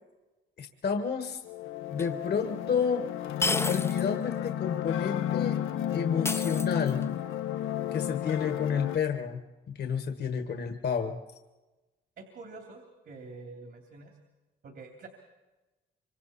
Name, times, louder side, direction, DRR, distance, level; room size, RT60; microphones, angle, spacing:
voice 1, 0.6-1.4 1.9-3.1 3.7-5.6 5.9-7.1 7.9-9.4 9.7-11.2, left 6 dB, 55° left, 5 dB, 1.6 m, -30 dB
sound 1, 1.4-9.0, left 11 dB, 80° left, 0.9 m, -32 dB
sound 2, 2.0-2.1 3.4-4.1 4.5-4.6 6.2-7.1, left 2 dB, 15° left, 0.7 m, -31 dB
voice 2, 12.2-14.1 14.6-15.1, right 3 dB, 60° right, 2 dB, 3.0 m, -46 dB
25.0 x 25.0 x 4.2 m, 1.1 s
cardioid pair, 90°, 20 cm